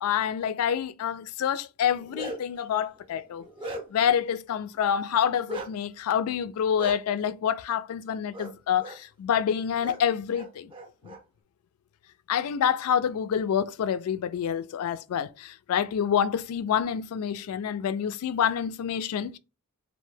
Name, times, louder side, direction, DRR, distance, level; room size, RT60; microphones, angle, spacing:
voice 1, 0.0-3.5 3.9-10.7 11.0-11.1 12.3-19.4, left 8 dB, 75° left, 0.3 m, -27 dB
Bark, 1.8-2.6 3.1-4.1 5.5-5.7 6.8-6.9 8.3-8.5 8.8-9.0 9.8-10.0 10.3-11.2, right 1 dB, 20° right, 0.5 m, -38 dB
2.6 x 2.1 x 3.1 m
head